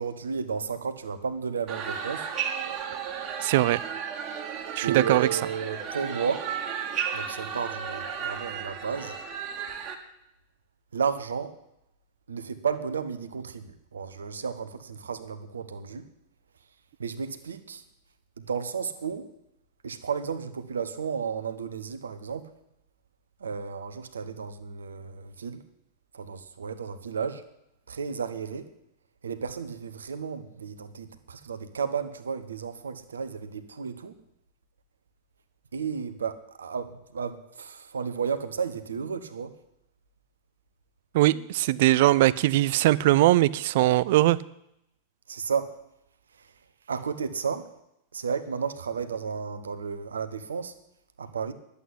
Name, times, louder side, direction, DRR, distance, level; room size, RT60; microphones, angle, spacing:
voice 1, 0.0-2.3 4.8-6.5 7.1-9.1 10.9-11.6 12.3-16.1 17.0-17.8 18.4-19.3 19.8-22.5 23.4-25.6 26.1-27.4 27.9-28.7 29.2-34.1 35.7-39.6 45.3-45.7 46.4-46.5 46.9-47.7 48.1-50.7 51.2-51.5, right 6 dB, 70° right, 11 dB, 1.1 m, -33 dB
sound 1, 1.7-9.9, right 7 dB, 35° right, 1.8 m, -34 dB
voice 2, 3.4-3.8 4.8-5.3 41.1-44.4, right 16 dB, 50° right, 20 dB, 0.5 m, -21 dB
11.0 x 8.3 x 9.8 m, 0.81 s
figure-of-eight pair, 90°, 0 cm